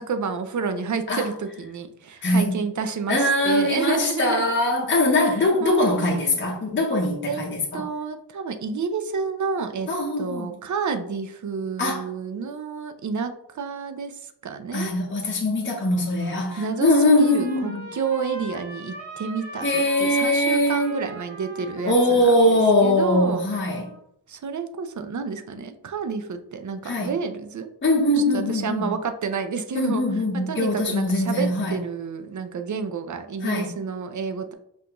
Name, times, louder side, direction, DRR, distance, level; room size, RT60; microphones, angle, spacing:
voice 1, 0.0-4.5 5.6-6.4 7.3-7.4 7.7-9.9 10.2-14.9 16.6-22.3 22.8-23.4 24.3-27.7 28.3-30.0 30.3-34.5, right 5 dB, 45° right, 0.5 m, -30 dB
voice 2, 2.2-2.6 3.1-7.8 9.9-10.5 11.8-12.0 14.7-17.8 19.6-20.9 21.9-23.9 26.8-27.1 27.8-28.9 29.7-31.8 33.4-33.7, left 1 dB, 25° left, 0.7 m, -22 dB
Trumpet, 15.6-24.0, right 1 dB, 90° right, 1.2 m, -41 dB
5.5 x 2.6 x 2.8 m
wide cardioid pair, 120°, 43 cm